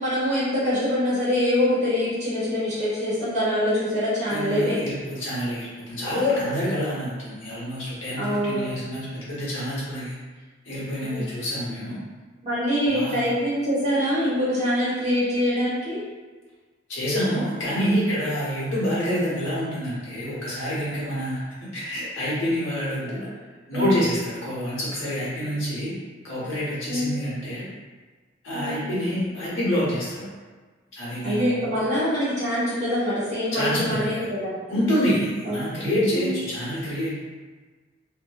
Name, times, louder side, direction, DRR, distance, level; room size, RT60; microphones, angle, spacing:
voice 1, 0.0-4.9 8.2-8.6 11.0-11.2 12.4-16.0 23.7-23.9 26.9-27.2 28.5-28.9 31.2-34.6 35.4-36.4, equal, 35° right, -10 dB, 1.0 m, -24 dB
voice 2, 4.2-10.1 10.6-12.0 12.8-13.2 16.9-23.3 23.7-25.9 26.2-27.6 28.4-30.3 30.9-31.7 33.5-34.3 34.7-37.2, equal, 80° left, -9 dB, 1.0 m, -27 dB
2.5 x 2.2 x 2.2 m, 1.4 s
head